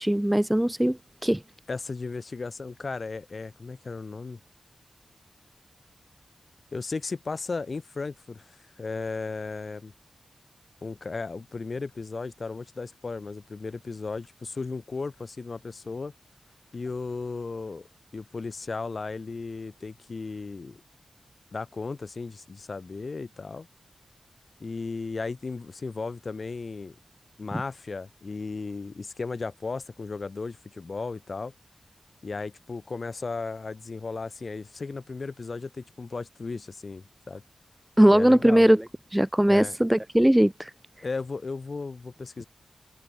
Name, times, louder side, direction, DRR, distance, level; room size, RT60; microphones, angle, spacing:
voice 1, 0.0-1.4 38.0-38.8 39.1-40.7, right 1 dB, 10° right, 1.1 m, -20 dB
voice 2, 1.7-4.4 6.7-9.9 10.8-16.1 16.7-17.9 18.1-20.8 21.5-23.7 24.6-26.9 27.4-31.5 32.2-37.4 38.1-38.6 39.5-39.8 41.0-42.5, left 4 dB, 50° left, 6.9 m, -35 dB
wide cardioid pair, 75°, 0 cm